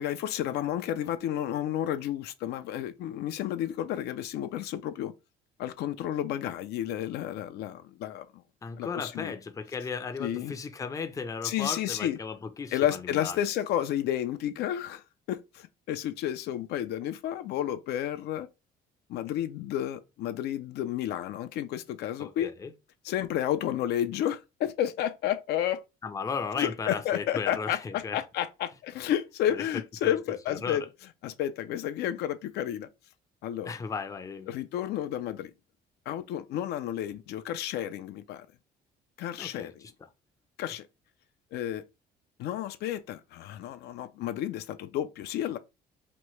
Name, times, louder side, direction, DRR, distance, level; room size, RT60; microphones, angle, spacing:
voice 1, 0.0-5.1 5.6-8.3 8.8-9.3 10.2-10.5 11.4-12.2 12.7-18.5 19.1-22.5 23.0-25.8 26.6-30.8 31.2-32.9 33.4-33.7 34.5-35.5 36.1-38.5 39.2-39.8 40.6-40.9 41.5-41.8 42.4-45.6, left 11 dB, 75° left, 0.4 m, -31 dB
voice 2, 8.6-13.4 22.2-22.7 26.0-28.2 29.5-29.6 30.0-30.2 30.5-30.9 33.7-34.5 39.4-39.9, left 5 dB, 20° left, 0.5 m, -36 dB
2.9 x 2.2 x 3.1 m
cardioid pair, 110°, 17 cm